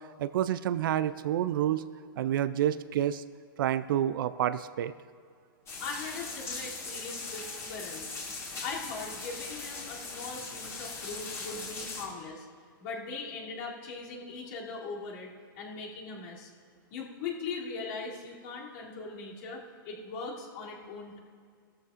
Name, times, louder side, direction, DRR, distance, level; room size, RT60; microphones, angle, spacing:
voice 1, 0.2-1.9 2.2-3.2 3.6-4.9, right 11 dB, 70° right, 13 dB, 0.4 m, -28 dB
sound 1, 5.7-12.0, left 3 dB, 20° left, 2.3 m, -40 dB
voice 2, 5.8-8.1 8.6-12.5 12.8-15.3 15.5-16.5 16.9-21.2, left 4 dB, 55° left, -4 dB, 2.9 m, -40 dB
16.0 x 13.5 x 2.5 m, 2.1 s
hypercardioid pair, 130°, 12 cm